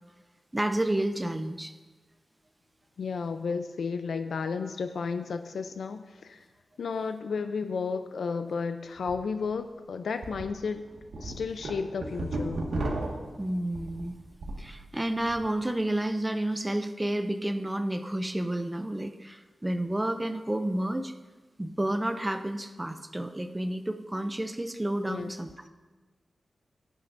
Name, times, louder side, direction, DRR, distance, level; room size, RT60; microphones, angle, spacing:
voice 1, 0.5-1.7 13.4-14.2 14.6-21.1 21.6-25.5, right 1 dB, 10° right, 8 dB, 0.4 m, -30 dB
voice 2, 3.0-6.4 6.8-10.8 11.2-12.6 25.1-25.3, left 5 dB, 85° left, 8 dB, 0.5 m, -32 dB
sound 1, 9.0-9.1 9.5-9.6 10.2-10.4 10.9-14.7 15.0-15.5, right 2 dB, 80° right, 1.7 m, -34 dB
17.5 x 9.3 x 2.6 m, 1.3 s
wide cardioid pair, 150°, 0 cm